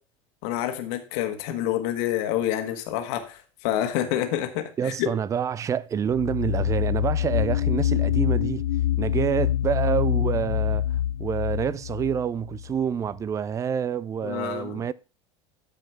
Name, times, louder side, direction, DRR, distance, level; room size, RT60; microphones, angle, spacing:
voice 1, 0.4-5.1 14.2-14.8, left 12 dB, 55° left, 1.6 m, -28 dB
voice 2, 4.8-8.7 9.0-10.9 11.2-14.9, right 8 dB, 20° right, 0.4 m, -27 dB
sound 1, 6.1-12.7, left 11 dB, 75° left, 0.4 m, -25 dB
12.0 x 4.9 x 4.6 m
figure-of-eight pair, 75°, 16 cm